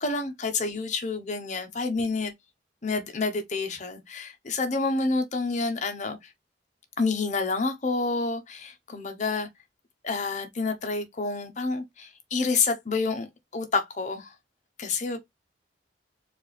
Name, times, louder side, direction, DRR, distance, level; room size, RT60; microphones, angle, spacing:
voice 1, 0.0-2.3 2.8-6.2 7.0-9.5 10.0-13.3 13.5-14.3 14.8-15.2, left 3 dB, 40° left, 0.8 m, -28 dB
4.4 x 2.4 x 3.3 m
head